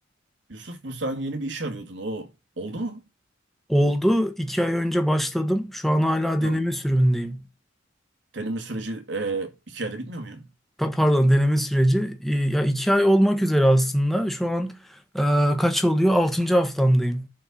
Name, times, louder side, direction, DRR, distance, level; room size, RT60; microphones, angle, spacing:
voice 1, 0.5-3.0 6.4-6.6 8.3-10.5, right 2 dB, 70° right, 2.4 m, -32 dB
voice 2, 3.7-7.4 10.8-17.3, equal, ahead, 1.4 m, -21 dB
11.0 x 4.6 x 6.0 m
head